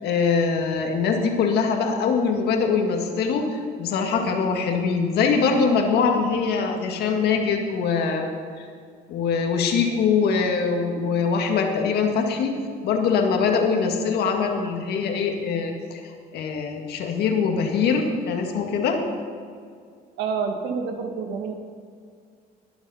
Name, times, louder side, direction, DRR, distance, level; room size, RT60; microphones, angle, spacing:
voice 1, 0.0-8.3 8.6-8.7 9.1-12.6 12.8-16.0 16.3-19.0, left 5 dB, 75° left, 3 dB, 2.0 m, -23 dB
voice 2, 20.2-21.5, right 5 dB, 90° right, 4 dB, 1.7 m, -28 dB
21.0 x 7.2 x 5.6 m, 2.2 s
cardioid pair, 110°, 17 cm